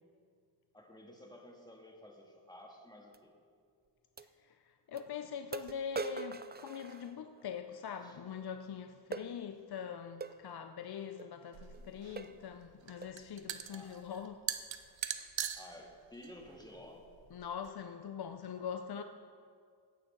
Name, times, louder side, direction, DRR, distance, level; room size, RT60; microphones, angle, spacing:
voice 1, 0.7-3.3 8.0-8.2 13.7-14.0 15.5-17.1, left 1 dB, 10° left, 0 dB, 1.8 m, -53 dB
sound 1, 3.1-3.2 4.2-4.3 5.0-5.1 5.5-7.5 9.1-9.3 10.2-10.4 11.2-11.3 11.7-11.9 12.2-12.5 13.0-13.2, right 5 dB, 25° right, 0.4 m, -43 dB
voice 2, 4.4-14.6 15.2-15.3 17.3-19.0, left 7 dB, 55° left, 7 dB, 0.6 m, -43 dB
sound 2, 11.5-17.7, right 9 dB, 75° right, 0.8 m, -43 dB
16.0 x 8.7 x 3.9 m, 2.2 s
cardioid pair, 80°, 46 cm